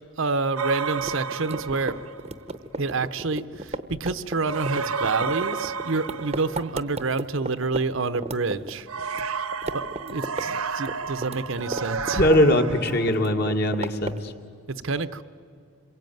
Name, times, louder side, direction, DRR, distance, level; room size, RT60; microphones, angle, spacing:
voice 1, 0.2-2.0 2.8-8.9 9.7-12.2 14.7-15.2, right 3 dB, 65° right, 12 dB, 0.9 m, -28 dB
sound 1, 0.6-2.3 4.4-7.0 8.9-13.3, right 5 dB, 85° right, 1.3 m, -31 dB
sound 2, 1.0-7.8 8.1-9.3 9.5-10.5 10.7-12.6 12.9-14.3, right 2 dB, 30° right, 0.8 m, -34 dB
voice 2, 12.2-14.3, left 1 dB, 45° left, 5 dB, 1.9 m, -21 dB
27.0 x 22.5 x 9.3 m, 2.3 s
head